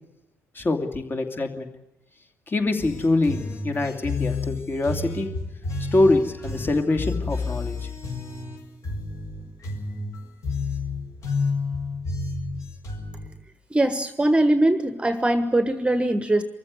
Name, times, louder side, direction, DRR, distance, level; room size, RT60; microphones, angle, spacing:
voice 1, 0.5-1.7 2.5-3.4 3.6-5.3 5.9-7.8, left 2 dB, 30° left, 5 dB, 2.9 m, -24 dB
sound 1, 2.8-13.3, left 3 dB, 45° left, 4.8 m, -30 dB
voice 2, 13.7-16.4, right 1 dB, 15° right, 11 dB, 1.4 m, -21 dB
24.5 x 15.0 x 9.5 m, 0.97 s
figure-of-eight pair, 45°, 7 cm